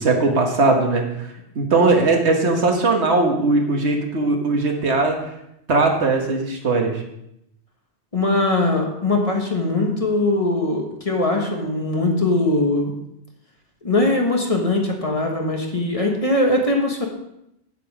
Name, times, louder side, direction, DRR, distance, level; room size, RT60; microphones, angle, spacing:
voice 1, 0.0-5.2 5.7-7.0, right 3 dB, 85° right, 2 dB, 1.7 m, -19 dB
voice 2, 8.1-12.9 13.8-17.1, left 2 dB, 35° left, 1 dB, 1.5 m, -21 dB
8.2 x 7.9 x 5.0 m, 0.81 s
omnidirectional pair, 1.1 m